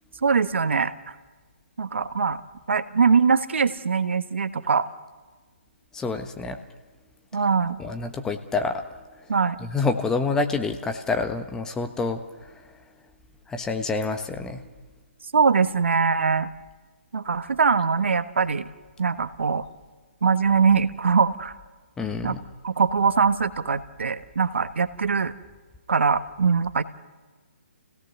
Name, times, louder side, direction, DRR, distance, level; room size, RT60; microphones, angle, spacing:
voice 1, 0.2-0.9 1.8-2.4 2.7-4.9 7.3-7.8 9.3-9.6 15.3-16.5 17.1-18.7 19.0-19.6 20.2-21.5 22.2-22.4 22.6-25.3 25.9-26.8, right 5 dB, 70° right, 12 dB, 1.2 m, -22 dB
voice 2, 5.9-6.6 7.8-8.8 9.6-12.5 13.5-14.6 22.0-22.4, left 4 dB, 10° left, 6 dB, 1.2 m, -27 dB
29.0 x 17.0 x 6.8 m, 1.3 s
figure-of-eight pair, 140°, 7 cm